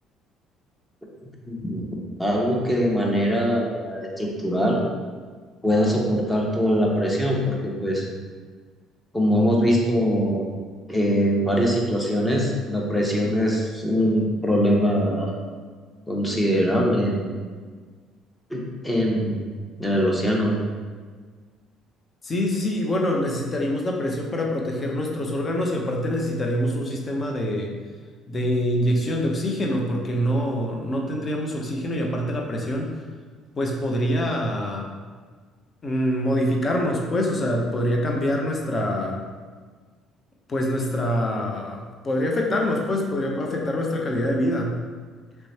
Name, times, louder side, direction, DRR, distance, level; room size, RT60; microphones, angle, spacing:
voice 1, 1.5-1.9 2.2-4.8 5.6-8.1 9.1-10.5 10.9-15.4 16.1-17.3 18.5-19.4 19.8-20.6, equal, 10° left, -2 dB, 1.0 m, -22 dB
voice 2, 22.2-27.7 28.3-32.9 33.6-34.9 35.8-39.2 40.5-44.8, equal, 35° left, 0 dB, 0.7 m, -25 dB
3.3 x 3.1 x 4.1 m, 1.5 s
hypercardioid pair, 65°, 0 cm